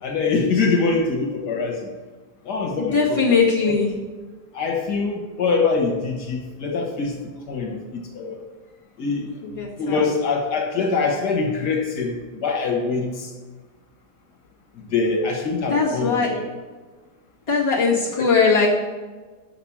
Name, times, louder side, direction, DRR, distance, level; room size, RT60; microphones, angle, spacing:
voice 1, 0.0-1.9 2.5-3.8 4.5-7.2 7.5-8.4 9.0-9.3 9.8-13.3 14.9-16.4 18.2-18.3, left 4 dB, 85° left, 1 dB, 1.9 m, -24 dB
voice 2, 2.8-3.9 9.4-10.1 15.7-16.3 17.5-18.7, left 5 dB, 20° left, -6 dB, 1.9 m, -20 dB
6.6 x 5.9 x 7.2 m, 1.4 s
omnidirectional pair, 1.7 m